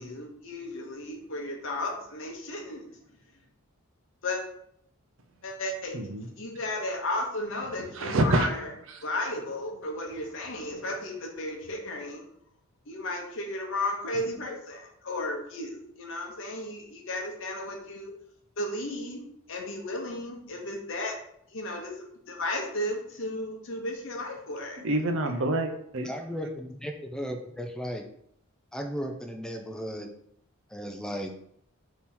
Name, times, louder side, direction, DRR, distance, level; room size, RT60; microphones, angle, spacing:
voice 1, 0.0-2.9 4.2-4.4 5.4-8.7 9.0-12.2 12.9-18.1 18.6-21.2 21.5-21.9 22.3-24.8, left 1 dB, 55° left, 1 dB, 0.9 m, -34 dB
voice 2, 5.9-6.3 7.9-8.5 8.9-9.0 24.8-26.1, right 2 dB, 60° right, 5 dB, 0.5 m, -26 dB
voice 3, 26.0-28.0 28.7-30.1 30.7-31.3, equal, 5° left, 4 dB, 0.3 m, -35 dB
3.5 x 2.9 x 4.3 m, 0.70 s
head